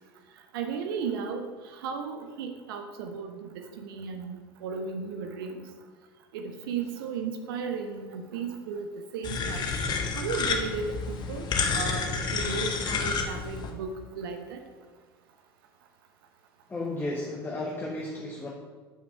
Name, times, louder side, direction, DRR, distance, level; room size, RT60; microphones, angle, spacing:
voice 1, 0.5-4.4 4.6-5.7 6.3-8.9 9.1-9.7 10.1-14.6, right 5 dB, 65° right, 5 dB, 1.0 m, -35 dB
sound 1, 9.2-13.7, left 4 dB, 35° left, 1.3 m, -29 dB
voice 2, 16.7-18.5, left 2 dB, 15° left, -1 dB, 1.2 m, -33 dB
8.6 x 7.1 x 5.5 m, 1.5 s
figure-of-eight pair, 75°, 13 cm